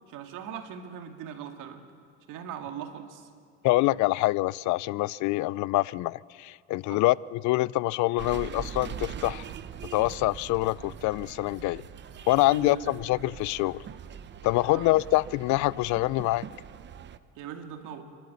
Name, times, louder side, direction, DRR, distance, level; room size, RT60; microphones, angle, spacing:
voice 1, 0.1-1.9 2.3-3.3 6.9-7.0 12.4-12.9 14.7-14.9 17.4-18.1, right 9 dB, 70° right, 2.2 m, -40 dB
voice 2, 3.6-9.4 9.9-11.8 12.3-13.8 14.4-16.4, left 19 dB, 60° left, 0.4 m, -25 dB
sound 1, 8.2-17.2, right 8 dB, 35° right, 0.8 m, -42 dB
28.0 x 12.5 x 8.3 m
cardioid pair, 130°, 33 cm